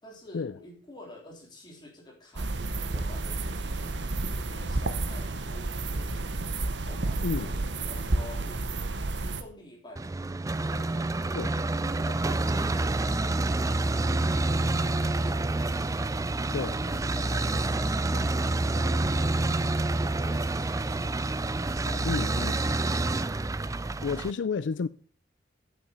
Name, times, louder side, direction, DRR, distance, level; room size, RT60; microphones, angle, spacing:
voice 1, 0.0-2.5 2.9-4.0 4.3-6.4 6.9-8.6 9.2-10.0 10.5-15.8 16.5-18.4 18.7-19.7 20.0-21.2 21.8-22.6, left 1 dB, 25° left, 3.6 m, -48 dB
sound 1, 2.4-9.4, right 2 dB, 70° right, 1.0 m, -31 dB
sound 2, 10.0-24.3, right 2 dB, 20° right, 0.4 m, -28 dB
voice 2, 22.0-22.6 24.0-24.9, left 5 dB, 80° left, 0.4 m, -30 dB
8.8 x 7.5 x 6.7 m
head